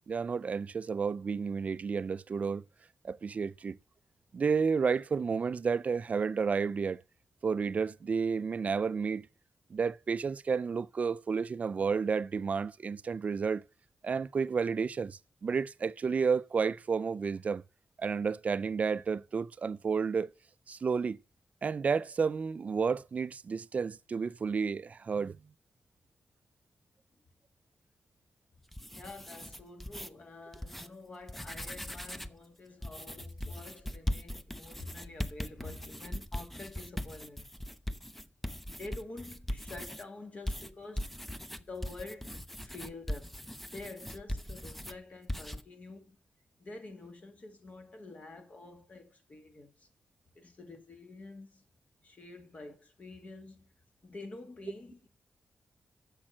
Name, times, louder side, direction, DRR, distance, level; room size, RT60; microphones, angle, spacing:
voice 1, 0.1-2.6 3.0-3.8 4.3-7.0 7.4-9.3 9.7-13.6 14.0-17.6 18.0-20.3 20.7-21.2 21.6-25.4, right 5 dB, 45° right, 0.4 m, -31 dB
sound 1, 28.6-30.1 30.5-30.9 31.2-32.4 32.8-40.0 40.5-45.0 45.3-45.6, left 1 dB, 5° left, 0.6 m, -39 dB
voice 2, 28.9-37.5 38.7-41.1 41.7-43.3 43.7-46.2 46.6-49.7 50.4-51.6 52.0-53.6 54.0-55.1, left 2 dB, 45° left, 2.2 m, -47 dB
7.4 x 6.1 x 7.5 m
wide cardioid pair, 110°, 3 cm